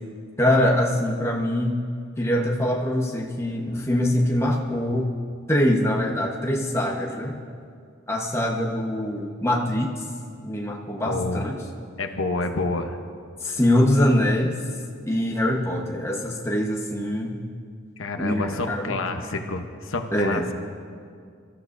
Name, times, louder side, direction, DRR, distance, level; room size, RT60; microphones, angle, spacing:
voice 1, 0.4-1.8 2.2-5.1 5.5-7.4 8.1-9.9 10.4-11.6 13.4-14.5 15.1-17.4 18.2-18.9 20.1-20.4, left 1 dB, 15° left, -1 dB, 1.1 m, -23 dB
voice 2, 11.0-11.5 12.0-13.0 18.0-20.5, left 2 dB, 80° left, 5 dB, 1.0 m, -28 dB
25.0 x 13.5 x 2.7 m, 2.2 s
head